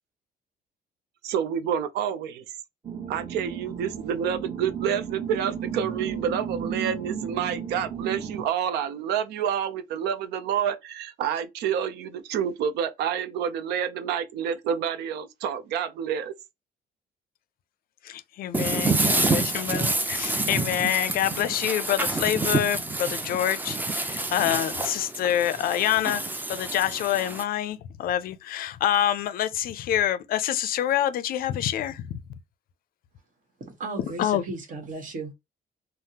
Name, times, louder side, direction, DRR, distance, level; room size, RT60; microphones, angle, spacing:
voice 1, 1.2-2.4 3.1-16.3, right 8 dB, 80° right, 0.5 m, -28 dB
sound 1, 2.8-8.4, right 7 dB, 25° right, 0.9 m, -34 dB
voice 2, 18.0-26.2 26.5-32.1 34.2-34.4, left 11 dB, 60° left, 0.4 m, -26 dB
sound 2, 18.5-27.4, right 2 dB, 10° right, 0.5 m, -28 dB
voice 3, 33.6-35.3, right 3 dB, 50° right, 1.3 m, -35 dB
3.4 x 2.0 x 2.8 m
cardioid pair, 110°, 17 cm